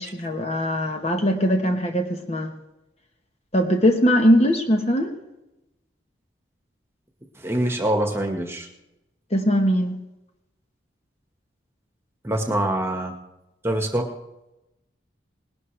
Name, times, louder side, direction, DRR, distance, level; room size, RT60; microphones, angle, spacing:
voice 1, 0.0-2.5 3.5-5.1 9.3-9.9, equal, 35° left, 4 dB, 1.2 m, -21 dB
voice 2, 7.3-8.7 12.2-13.1 13.6-14.1, right 1 dB, 15° right, 3 dB, 1.5 m, -24 dB
20.0 x 12.0 x 3.3 m, 0.94 s
head